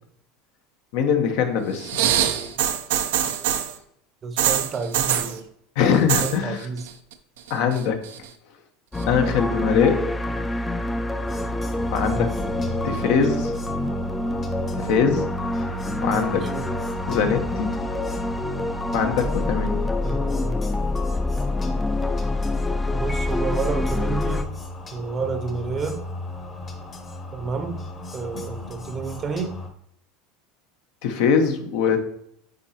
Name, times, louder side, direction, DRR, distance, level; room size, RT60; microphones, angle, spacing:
voice 1, 0.9-1.9 5.8-6.6 7.5-8.0 9.1-10.0 11.9-12.3 12.8-13.5 14.8-15.2 16.0-16.5 17.1-17.7 18.9-19.8 28.3-28.5 31.0-32.0, left 6 dB, 70° left, 5 dB, 1.0 m, -22 dB
sound 1, 1.8-3.7 4.4-5.3 5.9-6.4 6.6-7.1 7.5-8.3 9.0-9.1, right 10 dB, 80° right, 0.6 m, -23 dB
voice 2, 2.0-2.5 4.2-5.4 6.2-6.9 12.1-13.5 16.1-16.7 20.0-20.6 22.9-24.6 24.9-26.0 27.3-27.9 28.1-29.6, right 5 dB, 35° right, 9 dB, 0.8 m, -31 dB
sound 2, 8.9-24.4, left 2 dB, 10° left, 0.4 m, -26 dB
sound 3, 11.2-29.7, left 3 dB, 30° left, 1.0 m, -37 dB
8.7 x 4.0 x 2.9 m, 0.70 s
supercardioid pair, 105°, 0 cm